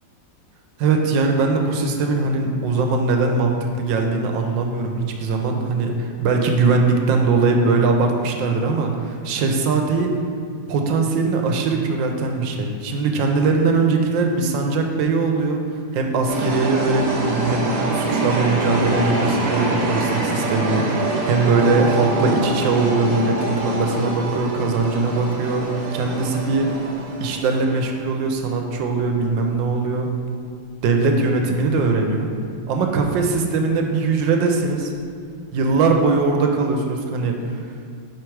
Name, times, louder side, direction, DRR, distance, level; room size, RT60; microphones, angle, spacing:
voice 1, 0.8-10.1 10.7-15.6 15.9-26.7 27.2-30.1 30.8-32.3 32.7-34.9 35.5-37.6, right 3 dB, 80° right, 3 dB, 1.3 m, -21 dB
sound 1, 16.3-28.0, right 2 dB, 65° right, 1.4 m, -25 dB
sound 2, 21.5-36.3, right 2 dB, 45° right, 1.1 m, -38 dB
4.9 x 4.8 x 4.5 m, 2.3 s
omnidirectional pair, 2.0 m